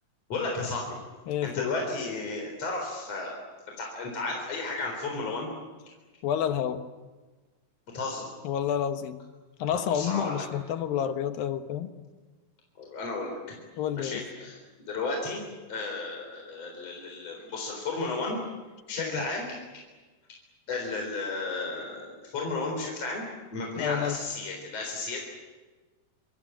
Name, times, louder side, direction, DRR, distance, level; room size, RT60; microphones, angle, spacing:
voice 1, 0.3-1.0 1.4-3.4 3.8-5.5 7.9-8.2 9.7-10.4 12.8-13.6 13.9-14.6 14.9-18.5 18.9-19.6 20.7-23.2 23.5-25.2, left 3 dB, 45° left, 1 dB, 5.0 m, -33 dB
voice 2, 1.3-1.7 6.2-6.8 8.4-9.2 9.6-11.9 13.8-14.2 19.0-19.3 23.8-24.2, left 9 dB, 75° left, 8 dB, 3.0 m, -29 dB
26.5 x 25.5 x 7.6 m, 1.3 s
omnidirectional pair, 4.2 m